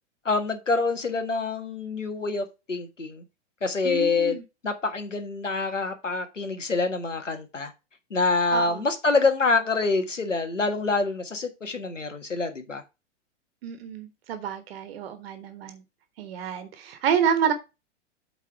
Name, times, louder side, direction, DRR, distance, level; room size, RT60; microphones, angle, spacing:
voice 1, 0.2-3.2 3.6-4.4 4.6-7.7 8.1-12.8, left 3 dB, 90° left, 1.6 m, -26 dB
voice 2, 3.8-4.4 8.5-8.8 13.6-15.8 16.2-17.5, right 8 dB, 55° right, 1.2 m, -28 dB
8.5 x 4.0 x 4.8 m
figure-of-eight pair, 105°, 36 cm